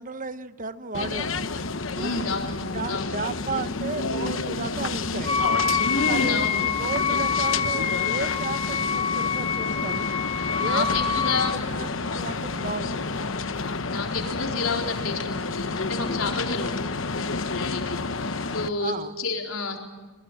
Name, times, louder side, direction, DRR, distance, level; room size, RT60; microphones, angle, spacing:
voice 1, 0.0-1.6 2.0-2.2 2.7-5.3 6.0-10.1 10.6-13.2 18.8-19.2, right 4 dB, 40° right, 12 dB, 1.0 m, -34 dB
sound 1, 0.9-18.7, left 3 dB, 65° left, 1.1 m, -30 dB
voice 2, 2.0-2.6 2.9-3.1 5.7-6.6 10.4-11.5 13.6-19.8, left 3 dB, 90° left, 2 dB, 4.2 m, -30 dB
Wind instrument woodwind instrument, 5.2-11.6, left 6 dB, 30° left, 1.3 m, -26 dB
22.5 x 22.0 x 8.9 m, 1.3 s
head